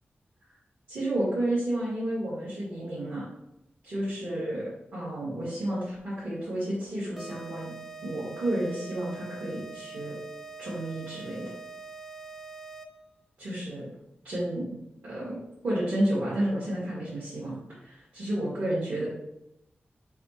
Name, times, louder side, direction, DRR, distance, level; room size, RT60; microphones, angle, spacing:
voice 1, 0.9-3.3 3.8-7.7 8.0-10.1 10.6-11.5 13.4-13.9 14.2-14.7 15.0-19.1, right 1 dB, 65° right, -9 dB, 1.8 m, -31 dB
sound 1, 7.2-13.1, right 4 dB, 5° right, 0.4 m, -44 dB
3.6 x 3.4 x 4.3 m, 0.84 s
wide cardioid pair, 160°, 4 cm